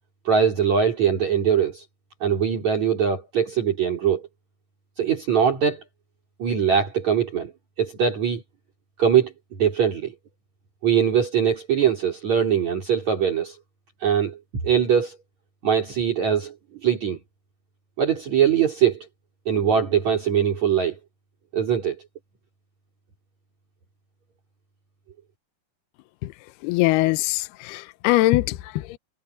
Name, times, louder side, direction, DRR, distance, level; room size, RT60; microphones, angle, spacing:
voice 1, 0.3-1.9 2.2-4.3 5.0-5.8 6.4-7.5 7.8-8.4 9.0-9.3 9.6-10.1 10.8-13.6 14.0-14.4 14.6-15.2 15.6-16.5 16.8-17.2 18.0-19.1 19.5-21.0 21.5-22.0, right 8 dB, 45° right, 5.2 m, -21 dB
voice 2, 26.6-29.0, left 19 dB, 80° left, 2.7 m, -22 dB
omnidirectional pair, 4.7 m